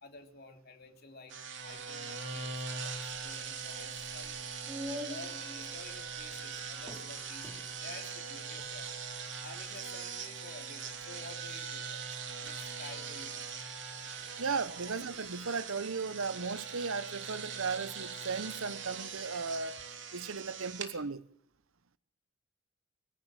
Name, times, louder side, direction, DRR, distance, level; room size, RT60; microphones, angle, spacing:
voice 1, 0.0-1.4 1.6-4.5 5.0-9.0 9.4-12.1 12.4-13.6 14.8-14.9, left 3 dB, 50° left, 3.4 m, -51 dB
sound 1, 1.3-20.9, right 6 dB, 60° right, 3.3 m, -41 dB
sound 2, 2.0-15.5, equal, 10° right, 5.5 m, -51 dB
voice 2, 14.4-19.8 20.1-21.2, right 4 dB, 90° right, 1.0 m, -36 dB
24.5 x 15.5 x 7.6 m
head